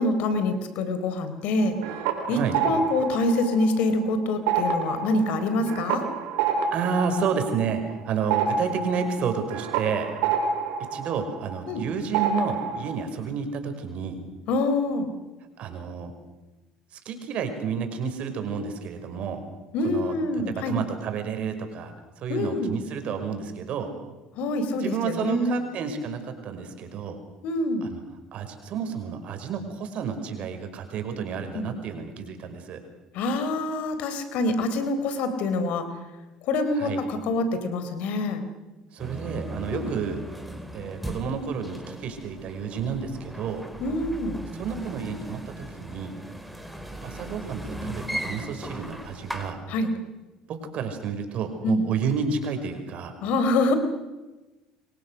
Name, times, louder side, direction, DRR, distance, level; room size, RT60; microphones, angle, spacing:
voice 1, 0.0-1.8 2.3-6.0 11.7-11.8 14.5-15.1 19.7-20.8 22.3-22.7 24.4-25.6 27.4-27.9 31.5-31.7 33.1-35.9 36.5-38.4 39.7-39.9 43.8-44.4 49.7-49.9 51.6-51.8 53.2-53.7, left 2 dB, 65° left, 9 dB, 4.2 m, -25 dB
sound 1, 1.6-4.0 4.3-11.8 12.1-13.0, right 6 dB, 75° right, 4.5 m, -28 dB
voice 2, 2.3-2.6 6.7-10.1 10.8-14.2 15.6-16.1 16.9-19.4 19.8-20.2 20.5-23.9 24.8-27.2 27.8-28.0 28.3-32.8 36.7-37.0 38.9-40.2 40.7-43.7 44.5-46.2 47.0-49.6 50.5-53.1, right 6 dB, 55° right, 6 dB, 5.3 m, -31 dB
sound 2, 39.0-49.5, right 1 dB, ahead, 5.0 m, -37 dB
29.0 x 23.0 x 6.5 m, 1.1 s
hypercardioid pair, 65°, 2 cm